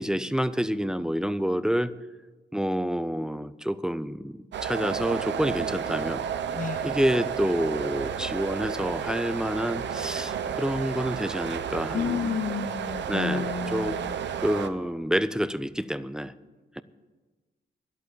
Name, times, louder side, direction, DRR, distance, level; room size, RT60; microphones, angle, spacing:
voice 1, 0.0-1.9 2.5-6.2 6.8-12.3 13.1-14.0 14.4-16.3 16.8-16.9, equal, 5° right, 15 dB, 0.5 m, -28 dB
sound 1, 4.5-14.7, right 8 dB, 80° right, 0.8 m, -32 dB
voice 2, 6.5-6.8 11.9-14.2, left 7 dB, 45° left, 14 dB, 0.8 m, -31 dB
11.0 x 8.4 x 9.9 m, 1.2 s
cardioid pair, 95°, 18 cm